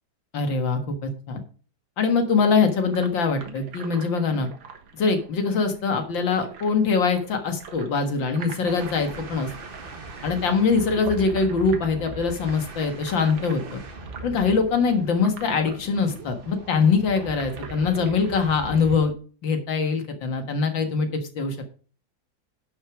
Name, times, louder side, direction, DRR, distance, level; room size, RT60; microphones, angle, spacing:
voice 1, 0.3-1.4 2.0-4.5 4.9-9.5 10.2-13.8 14.2-19.1 19.4-21.6, left 5 dB, 75° left, 6 dB, 2.3 m, -23 dB
sound 1, 2.8-19.0, right 6 dB, 90° right, 2.2 m, -43 dB
sound 2, 8.6-19.2, right 2 dB, 30° right, 1.3 m, -41 dB
11.0 x 6.4 x 5.0 m, 0.39 s
omnidirectional pair, 2.1 m